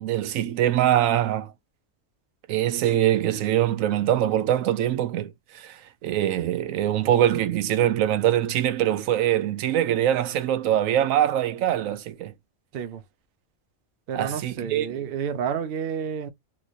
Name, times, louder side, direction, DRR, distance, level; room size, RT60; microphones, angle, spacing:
voice 1, 0.0-1.5 2.5-5.3 5.5-12.3 14.1-14.9, right 11 dB, 90° right, 1.0 m, -23 dB
voice 2, 14.1-16.3, right 7 dB, 55° right, 0.7 m, -30 dB
3.1 x 2.9 x 2.5 m
omnidirectional pair, 1.3 m